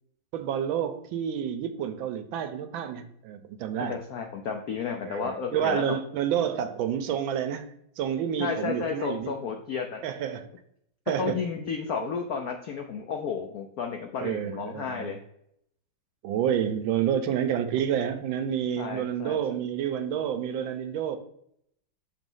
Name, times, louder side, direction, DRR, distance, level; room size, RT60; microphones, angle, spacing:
voice 1, 0.3-4.0 5.0-9.3 10.0-10.5 11.1-11.4 12.0-12.1 14.2-15.1 16.2-21.2, right 9 dB, 80° right, 1.3 m, -29 dB
voice 2, 3.9-6.0 8.4-10.0 11.2-15.2 18.8-19.4, left 6 dB, 85° left, 0.8 m, -32 dB
6.7 x 3.0 x 5.4 m
omnidirectional pair, 2.3 m